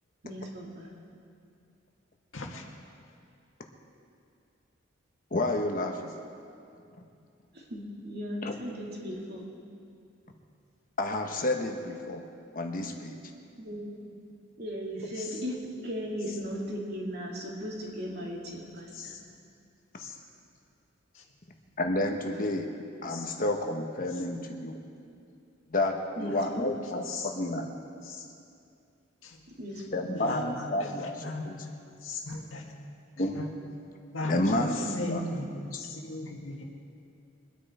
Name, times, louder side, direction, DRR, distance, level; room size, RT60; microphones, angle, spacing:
voice 1, 0.2-0.9 7.5-9.4 13.6-14.1 14.6-19.2 26.2-26.6 29.6-30.2 34.8-35.2, equal, 50° right, -2 dB, 2.5 m, -37 dB
voice 2, 2.3-2.6 15.2-15.3 18.9-19.2 20.0-20.2 21.1-21.2 23.1-23.3 26.3-26.4 27.0-27.3 28.0-28.3 29.2-29.4 30.1-31.4 32.0-32.6 33.3-33.5 34.1-36.6, left 2 dB, 75° left, 0 dB, 1.9 m, -38 dB
voice 3, 5.3-6.1 8.4-8.5 11.0-12.2 12.5-13.2 21.8-22.7 23.0-24.8 25.7-27.7 29.9-31.5 33.2-33.4 34.2-35.2, left 1 dB, 40° left, 3 dB, 1.1 m, -30 dB
23.5 x 9.9 x 4.3 m, 2.5 s
head